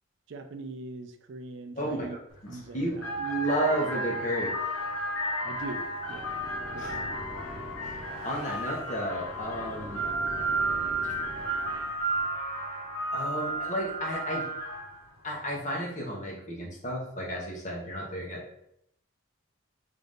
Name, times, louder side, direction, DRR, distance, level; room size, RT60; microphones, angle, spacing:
voice 1, 0.3-2.2 2.5-3.1 5.4-6.3 6.7-7.1, right 2 dB, 55° right, 7 dB, 0.4 m, -41 dB
voice 2, 1.7-2.9 3.1-4.5 6.8-7.0 7.8-10.0 13.1-14.5 15.2-18.4, right 1 dB, 35° left, -3 dB, 1.0 m, -32 dB
sound 1, 2.3-2.5 2.9-15.0, right 1 dB, 80° left, 0.8 m, -33 dB
sound 2, 5.5-12.2, equal, 10° right, 1.0 m, -44 dB
3.9 x 2.5 x 3.5 m, 0.75 s
head